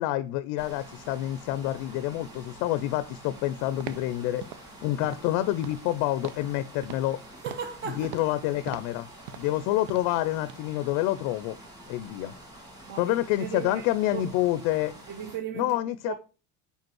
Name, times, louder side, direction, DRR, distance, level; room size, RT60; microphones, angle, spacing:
voice 1, 0.0-4.4 4.8-7.2 7.9-9.1 9.4-11.6 11.9-12.3 13.0-14.9 15.5-16.2, left 14 dB, 70° left, 0.5 m, -28 dB
sound 1, 0.6-15.4, right 1 dB, 10° right, 1.8 m, -48 dB
sound 2, 3.8-4.1 4.4-4.7 5.0-5.3 5.6-5.9 6.2-6.5 6.8-7.1 7.5-7.8 8.0-8.4 8.7-9.0 9.3-9.6 9.9-10.2 10.5-10.6, right 9 dB, 85° right, 0.7 m, -41 dB
voice 2, 7.4-8.3 9.4-9.5 12.9-13.8 14.1-14.2 15.1-16.2, right 8 dB, 35° right, 0.5 m, -37 dB
5.2 x 5.0 x 6.1 m
cardioid pair, 180°, 33 cm